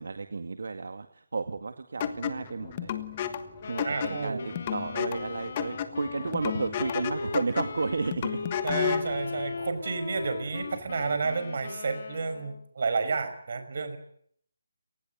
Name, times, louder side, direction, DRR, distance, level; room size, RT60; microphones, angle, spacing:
voice 1, 0.0-2.9 3.7-4.4 4.7-8.4, right 4 dB, 65° right, 8 dB, 2.1 m, -32 dB
sound 1, 2.0-9.1, left 9 dB, 20° left, 1.4 m, -33 dB
sound 2, 2.0-11.4, right 3 dB, 5° right, 5.2 m, -52 dB
Wind instrument woodwind instrument, 3.6-12.7, left 4 dB, 40° left, 2.3 m, -39 dB
voice 2, 3.8-4.5 8.6-14.0, right 4 dB, 45° right, 10 dB, 5.4 m, -31 dB
29.0 x 19.5 x 9.5 m, 0.67 s
hypercardioid pair, 175°, 0 cm